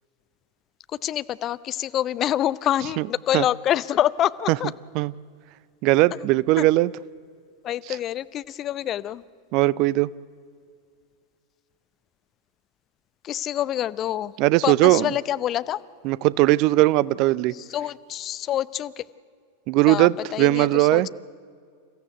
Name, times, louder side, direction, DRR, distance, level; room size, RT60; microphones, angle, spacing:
voice 1, 1.0-4.7 6.6-6.7 7.6-9.2 13.2-14.3 14.6-15.8 17.5-19.0 19.9-21.1, left 12 dB, 30° left, 17 dB, 0.6 m, -26 dB
voice 2, 5.8-6.9 9.5-10.1 14.4-15.1 16.0-17.5 19.7-21.1, right 18 dB, 40° right, 21 dB, 0.5 m, -19 dB
28.5 x 14.5 x 8.1 m, 2.1 s
figure-of-eight pair, 90°, 0 cm